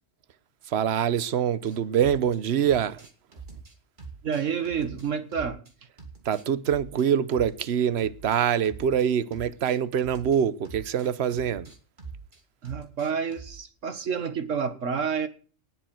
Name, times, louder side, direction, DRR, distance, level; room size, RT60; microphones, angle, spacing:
voice 1, 0.7-3.0 6.2-11.7, right 8 dB, 60° right, 1.1 m, -25 dB
sound 1, 1.6-2.4 2.6-5.7 6.0-9.1 9.3-13.6, right 4 dB, 40° right, 2.8 m, -45 dB
voice 2, 4.2-5.6 12.6-15.3, right 6 dB, 80° right, 1.9 m, -29 dB
19.5 x 7.6 x 7.8 m
omnidirectional pair, 1.3 m